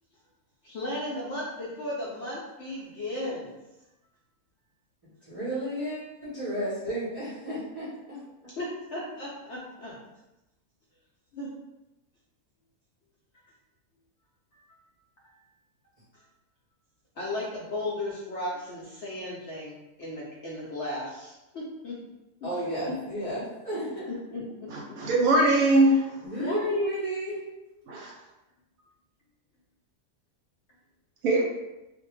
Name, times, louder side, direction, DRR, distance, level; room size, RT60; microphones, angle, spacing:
voice 1, 0.6-3.5 8.6-10.0 11.3-11.5 13.3-13.4 15.2-15.3 17.2-22.0 22.4-22.5 23.7-23.8 24.3-24.7 26.4-27.0, left 1 dB, 65° left, -6 dB, 0.7 m, -34 dB
voice 2, 5.3-8.5 22.4-24.0 26.2-27.4, right 1 dB, 40° right, -10 dB, 0.5 m, -33 dB
voice 3, 24.7-26.1 27.9-28.1 31.2-31.5, right 1 dB, 70° right, -2 dB, 0.9 m, -21 dB
2.5 x 2.1 x 3.0 m, 0.97 s
omnidirectional pair, 1.6 m